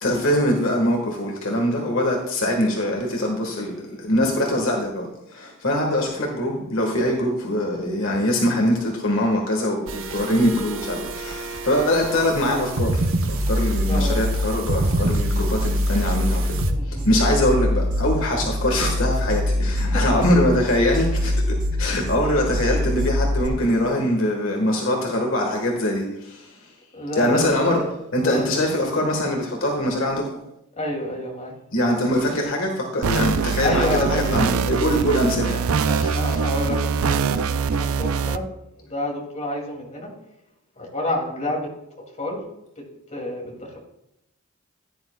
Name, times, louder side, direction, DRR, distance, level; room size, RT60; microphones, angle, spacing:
voice 1, 0.0-16.6 16.9-21.4 21.8-26.6 27.1-27.8 28.1-30.3 31.7-36.4, left 1 dB, 65° left, 1 dB, 1.6 m, -23 dB
sound 1, 9.9-16.7, right 2 dB, 65° right, 1.0 m, -28 dB
sound 2, 13.2-23.5, left 1 dB, 40° right, 1.2 m, -24 dB
voice 2, 13.9-14.2 16.6-17.1 19.9-20.3 22.2-22.4 26.9-27.9 28.2-28.5 30.8-31.5 33.6-34.4 35.8-38.5 38.8-40.1 40.8-41.7 42.2-42.4 43.1-43.8, left 1 dB, 30° left, -1 dB, 2.6 m, -29 dB
sound 3, 33.0-38.4, right 6 dB, 80° right, 0.5 m, -23 dB
15.5 x 10.0 x 2.3 m, 0.84 s
head